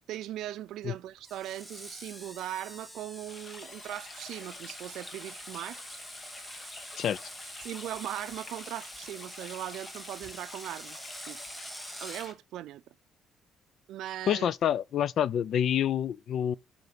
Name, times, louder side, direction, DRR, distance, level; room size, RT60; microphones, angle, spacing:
voice 1, 0.1-5.8 7.6-11.0 11.3-11.4 12.0-12.8 13.9-14.5, right 13 dB, 70° right, 0.5 m, -39 dB
Screech, 1.2-12.3, equal, 5° left, 0.9 m, -46 dB
sound 1, 3.3-12.3, left 3 dB, 25° left, 1.3 m, -48 dB
voice 2, 14.3-16.5, left 9 dB, 55° left, 0.3 m, -27 dB
6.7 x 5.2 x 6.5 m
cardioid pair, 140°, 0 cm